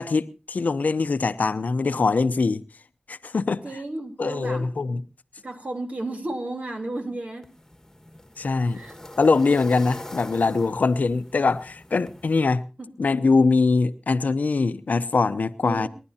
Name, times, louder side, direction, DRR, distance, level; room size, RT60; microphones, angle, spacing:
voice 1, 0.0-2.6 3.1-3.8 4.2-5.0 8.4-8.8 9.2-12.6 13.0-15.9, left 4 dB, 90° left, 0.7 m, -22 dB
voice 2, 3.6-5.0 5.4-7.5 8.7-9.0 12.8-12.9 15.6-15.9, right 2 dB, 60° right, 3.5 m, -33 dB
sound 1, 7.4-12.4, left 1 dB, 15° left, 1.6 m, -43 dB
29.5 x 11.0 x 2.8 m
wide cardioid pair, 55°, 3 cm